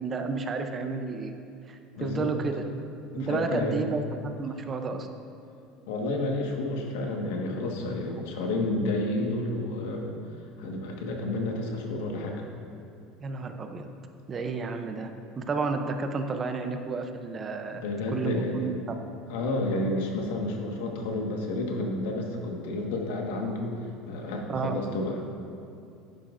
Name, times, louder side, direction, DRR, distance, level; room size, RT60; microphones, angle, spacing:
voice 1, 0.0-1.4 1.7-2.6 3.2-5.1 13.2-13.9 14.3-15.1 15.4-17.9 18.1-19.0 24.5-24.7, right 4 dB, 25° right, 6 dB, 0.6 m, -31 dB
voice 2, 1.9-2.3 3.1-3.9 5.9-10.1 10.6-12.4 17.7-18.7 19.3-23.8 24.1-25.3, left 2 dB, 90° left, 1 dB, 1.4 m, -30 dB
11.0 x 10.5 x 2.5 m, 2.6 s
cardioid pair, 155°, 0 cm